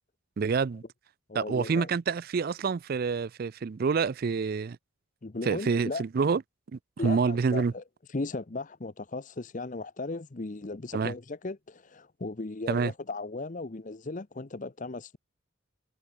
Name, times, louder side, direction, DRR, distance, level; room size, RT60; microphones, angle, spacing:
voice 1, 0.4-0.8 1.3-4.8 5.4-6.4 6.7-7.7 10.9-11.1 12.7-12.9, right 5 dB, 45° right, 0.4 m, -27 dB
voice 2, 1.3-1.9 5.2-6.0 7.0-7.8 8.1-15.2, left 3 dB, 35° left, 0.7 m, -36 dB
head